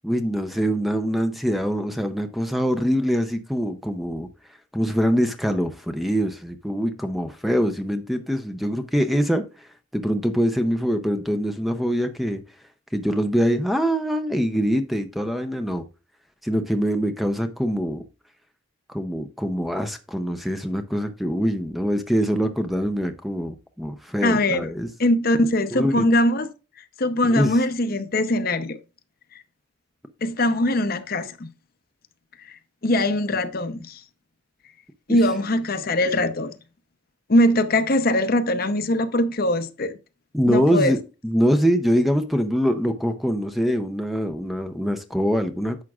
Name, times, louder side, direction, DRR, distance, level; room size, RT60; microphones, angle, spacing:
voice 1, 0.0-4.3 4.7-9.7 9.9-12.4 12.9-15.8 16.4-18.0 18.9-24.9 25.7-26.0 27.2-27.5 40.3-41.0 41.2-45.8, equal, ahead, 0.6 m, -24 dB
voice 2, 24.2-24.7 25.0-26.5 27.0-28.8 30.2-31.5 32.4-34.0 35.1-36.5 37.3-39.9 40.5-40.9, left 1 dB, 45° left, 0.7 m, -21 dB
11.0 x 7.4 x 2.4 m
head